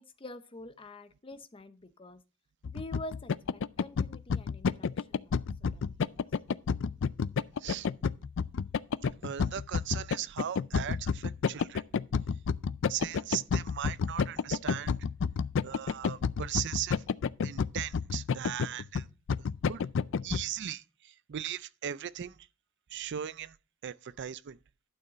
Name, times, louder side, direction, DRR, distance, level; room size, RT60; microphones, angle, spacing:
voice 1, 0.0-2.2 2.7-6.1, left 1 dB, 25° left, 0.7 m, -47 dB
sound 1, 2.6-20.4, left 6 dB, 60° left, 0.4 m, -30 dB
voice 2, 9.0-11.8 12.9-14.9 15.6-17.0 17.4-19.1 19.7-19.8 20.2-22.3 22.9-23.5 23.8-24.6, right 10 dB, 55° right, 0.4 m, -38 dB
11.5 x 6.6 x 3.9 m
head